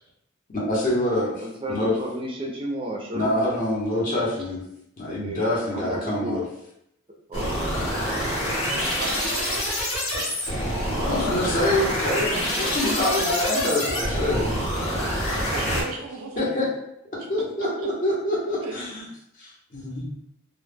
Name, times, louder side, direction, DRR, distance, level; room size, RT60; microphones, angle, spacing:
voice 1, 0.5-1.9 3.1-4.6 5.0-6.4 10.8-14.5 16.4-16.7 17.3-19.0 19.4-20.0, left 1 dB, 40° left, -5 dB, 0.8 m, -25 dB
voice 2, 1.4-3.3 5.2-6.4 7.3-7.5 9.2-9.3, right 1 dB, 25° right, 0 dB, 0.4 m, -32 dB
sound 1, 7.3-15.8, equal, 75° left, 0.9 m, -26 dB
voice 3, 8.6-10.3 15.5-16.4 17.2-17.3 17.5-17.9 18.6-18.8, right 3 dB, 85° right, 3 dB, 0.5 m, -36 dB
2.1 x 2.0 x 3.3 m, 0.78 s
head